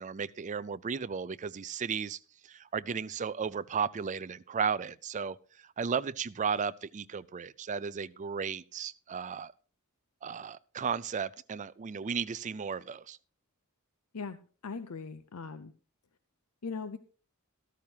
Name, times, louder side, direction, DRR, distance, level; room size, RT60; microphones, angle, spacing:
voice 1, 0.0-5.4 5.6-9.5 10.2-13.2, right 6 dB, 35° right, 0.4 m, -34 dB
voice 2, 14.1-15.7 16.6-17.0, left 5 dB, 80° left, 0.7 m, -40 dB
13.5 x 13.5 x 2.8 m
head